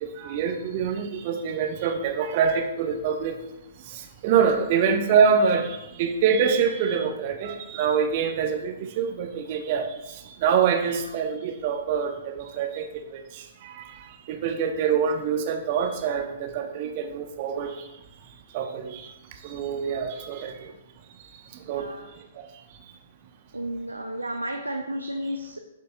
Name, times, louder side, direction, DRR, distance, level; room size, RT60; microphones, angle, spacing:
voice 1, 0.0-3.3 3.9-10.1 10.4-13.8 14.3-17.8 18.5-19.1 19.4-20.7 21.7-21.9, right 6 dB, 40° right, 5 dB, 0.9 m, -25 dB
voice 2, 21.6-22.1 23.5-25.6, right 1 dB, 85° right, 4 dB, 0.5 m, -32 dB
11.0 x 5.1 x 2.3 m, 0.92 s
figure-of-eight pair, 115°, 0 cm